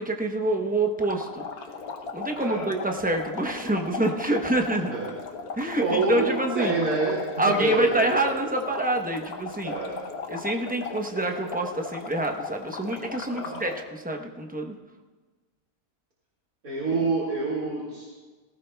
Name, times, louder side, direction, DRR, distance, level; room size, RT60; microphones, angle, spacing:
voice 1, 0.0-1.5 2.1-4.9 5.5-6.7 7.4-9.7 10.3-14.7, right 2 dB, 10° right, 2 dB, 0.5 m, -27 dB
sound 1, 1.0-13.8, left 4 dB, 85° left, 1.4 m, -37 dB
voice 2, 2.4-2.7 4.9-5.1 5.8-8.4 9.6-10.0 13.3-13.7 16.6-18.1, right 3 dB, 75° right, -6 dB, 2.6 m, -27 dB
18.5 x 15.5 x 2.3 m, 1.3 s
omnidirectional pair, 1.5 m